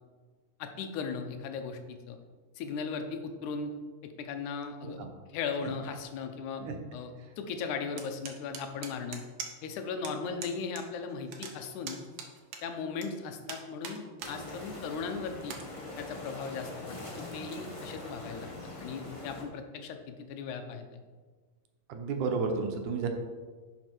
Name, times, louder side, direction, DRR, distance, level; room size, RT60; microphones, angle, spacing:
voice 1, 0.6-2.2 2.6-3.7 4.0-6.6 6.9-9.2 9.6-12.0 12.6-15.6 16.0-18.5 18.8-21.0, left 5 dB, 85° left, 6 dB, 2.3 m, -37 dB
sound 1, 8.0-9.7 10.0-10.1 10.4-10.8 11.1-13.1 13.5-14.4 14.8-14.9 15.4-15.6, right 6 dB, 65° right, 2.0 m, -41 dB
sound 2, 14.2-19.4, left 2 dB, 60° left, 0.3 m, -43 dB
voice 2, 21.9-23.1, right 4 dB, 85° right, 4 dB, 2.5 m, -32 dB
10.5 x 5.9 x 4.4 m, 1.4 s
omnidirectional pair, 3.4 m